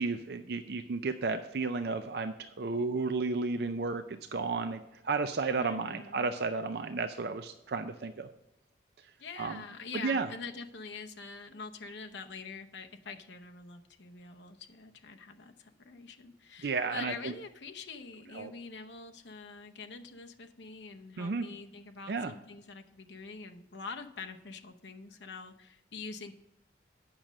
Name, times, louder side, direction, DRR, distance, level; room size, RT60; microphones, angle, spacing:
voice 1, 0.0-8.3 9.4-9.6 9.9-10.3 16.6-17.3 18.3-18.5 21.2-21.5 22.1-22.3, right 4 dB, 55° right, 8 dB, 0.4 m, -33 dB
voice 2, 5.6-6.3 9.2-26.3, left 4 dB, 70° left, 5 dB, 0.9 m, -45 dB
8.8 x 6.2 x 5.2 m, 0.93 s
head